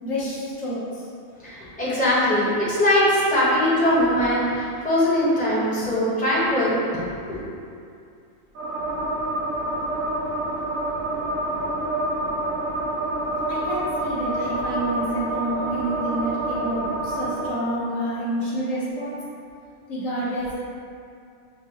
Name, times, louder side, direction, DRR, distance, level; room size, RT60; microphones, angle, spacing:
voice 1, 0.0-1.1 13.5-19.2 19.9-20.5, right 1 dB, 70° left, -9 dB, 1.5 m, -28 dB
voice 2, 1.4-7.4, left 1 dB, 5° left, -10 dB, 1.0 m, -21 dB
sound 1, 8.5-17.5, right 1 dB, 85° right, 1.1 m, -27 dB
7.0 x 2.4 x 3.0 m, 2.4 s
omnidirectional pair, 1.4 m